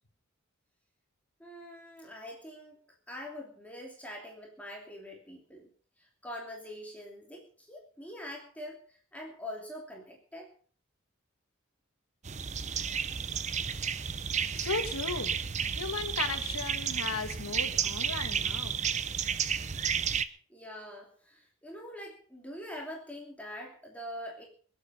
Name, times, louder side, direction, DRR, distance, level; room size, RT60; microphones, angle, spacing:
voice 1, 1.4-2.8 3.1-5.7 6.0-10.5 20.5-24.5, equal, 5° left, 0 dB, 3.0 m, -44 dB
sound 1, 12.2-20.2, right 7 dB, 35° right, 0.7 m, -32 dB
voice 2, 14.5-15.3 15.7-18.8, left 4 dB, 85° left, 9 dB, 1.9 m, -36 dB
24.0 x 8.1 x 5.5 m, 0.43 s
head